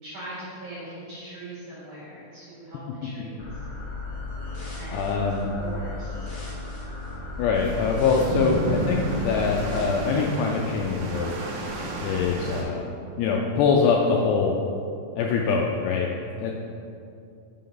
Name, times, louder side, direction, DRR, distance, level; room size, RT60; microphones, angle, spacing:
voice 1, 0.0-3.6 4.8-5.3 5.6-6.4, right 1 dB, 55° right, -10 dB, 2.6 m, -41 dB
sound 1, 3.4-9.8, left 3 dB, 65° left, 1.1 m, -35 dB
voice 2, 4.9-5.6 7.4-11.3 12.0-12.8 13.2-14.6 15.2-16.1 16.4-16.5, left 5 dB, 90° left, 0 dB, 2.4 m, -23 dB
sound 2, 7.5-12.6, right 1 dB, 85° right, 2.0 m, -31 dB
6.7 x 5.8 x 5.2 m, 2.6 s
omnidirectional pair, 5.4 m